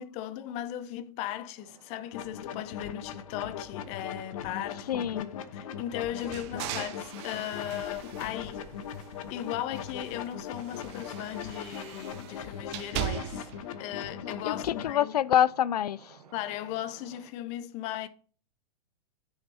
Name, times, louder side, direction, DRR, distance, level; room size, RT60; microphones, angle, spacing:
voice 1, 0.0-8.6 9.3-13.5 13.8-15.2 16.3-18.1, left 12 dB, 35° left, 0.6 m, -37 dB
sound 1, 1.6-17.3, right 6 dB, 75° right, 1.3 m, -57 dB
sound 2, 2.1-14.9, left 8 dB, 60° left, 0.9 m, -40 dB
voice 2, 4.9-5.3 14.4-16.2, left 10 dB, 85° left, 0.4 m, -26 dB
sound 3, 6.1-9.3 9.7-13.6, right 12 dB, 45° right, 0.7 m, -40 dB
10.0 x 5.7 x 2.7 m
hypercardioid pair, 125°, 20 cm